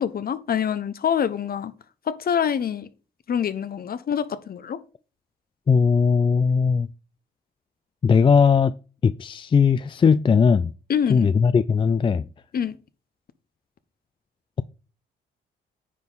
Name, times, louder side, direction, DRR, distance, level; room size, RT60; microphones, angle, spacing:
voice 1, 0.0-1.7 2.1-2.9 3.3-4.8 10.9-11.3 12.5-12.8, left 8 dB, 50° left, 1.0 m, -25 dB
voice 2, 5.7-6.9 8.0-8.7 9.0-10.7 11.1-12.2, left 6 dB, 25° left, 0.4 m, -18 dB
9.7 x 5.4 x 4.0 m
cardioid pair, 90°, 20 cm